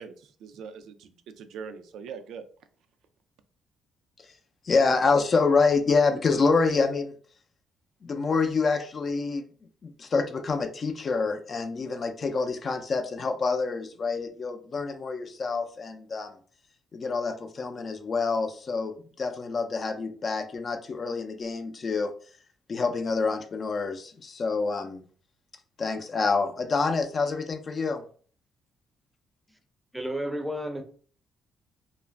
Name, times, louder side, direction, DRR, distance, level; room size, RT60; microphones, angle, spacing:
voice 1, 0.0-2.5, right 6 dB, 80° right, 0.3 m, -42 dB
voice 2, 4.7-7.1 8.0-9.4 9.8-16.3 16.9-22.1 22.7-25.0 25.8-28.0, left 4 dB, 45° left, 0.4 m, -27 dB
voice 3, 29.9-30.8, equal, 5° right, 0.5 m, -31 dB
2.4 x 2.0 x 3.2 m
cardioid pair, 90°, 0 cm